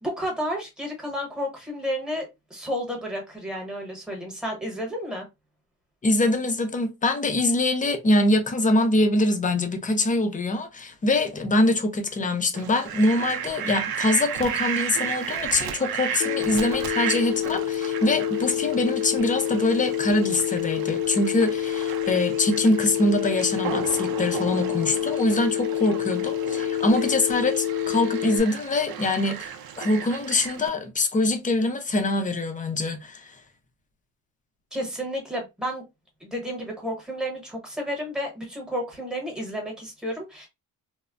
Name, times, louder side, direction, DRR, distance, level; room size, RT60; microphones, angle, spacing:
voice 1, 0.0-5.2 34.7-35.8 36.2-40.5, equal, ahead, 0.9 m, -31 dB
voice 2, 6.0-29.5 29.8-33.3, left 2 dB, 20° left, 0.4 m, -24 dB
Fowl, 12.5-30.7, right 8 dB, 75° right, 0.5 m, -34 dB
Telephone, 16.2-28.4, left 11 dB, 85° left, 0.6 m, -28 dB
3.2 x 2.0 x 2.3 m
wide cardioid pair, 150°, 36 cm